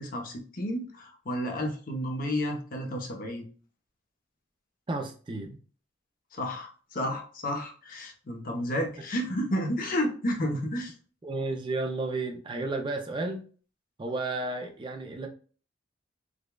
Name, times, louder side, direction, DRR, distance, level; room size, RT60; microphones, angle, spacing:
voice 1, 0.0-3.5 6.3-10.9, equal, 45° left, 3 dB, 0.7 m, -31 dB
voice 2, 4.9-5.6 11.2-13.4 14.0-15.3, right 2 dB, 25° right, 4 dB, 0.4 m, -32 dB
4.9 x 2.2 x 2.2 m, 0.40 s
head